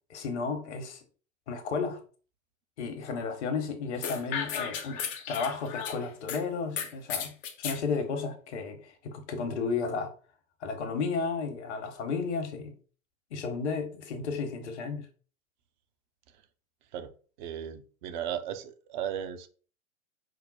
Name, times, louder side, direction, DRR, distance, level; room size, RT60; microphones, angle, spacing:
voice 1, 0.1-1.0 1.5-2.0 2.8-5.0 5.3-10.1 10.6-12.7 13.3-15.1, left 4 dB, 55° left, 6 dB, 1.2 m, -33 dB
sound 1, 4.0-6.4 6.8-7.8, left 7 dB, 20° left, 0.4 m, -34 dB
voice 2, 17.4-19.5, right 9 dB, 35° right, 10 dB, 0.5 m, -36 dB
5.1 x 2.0 x 4.1 m, 0.39 s
figure-of-eight pair, 100°, 40 cm